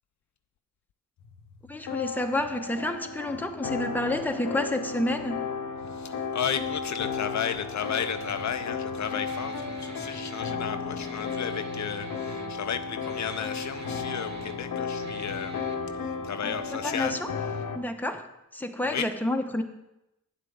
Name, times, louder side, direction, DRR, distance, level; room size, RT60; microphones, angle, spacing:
sound 1, 1.2-17.8, left 5 dB, 80° left, 0.8 m, -34 dB
voice 1, 1.7-5.5 16.4-17.3 17.7-19.6, left 1 dB, 5° left, 5 dB, 0.8 m, -30 dB
voice 2, 5.9-15.6 16.0-17.2 18.9-19.1, left 8 dB, 60° left, 10 dB, 0.4 m, -33 dB
Guitar, 7.8-15.8, right 4 dB, 55° right, 1.1 m, -46 dB
9.1 x 7.5 x 3.6 m, 0.90 s
cardioid pair, 55°, 33 cm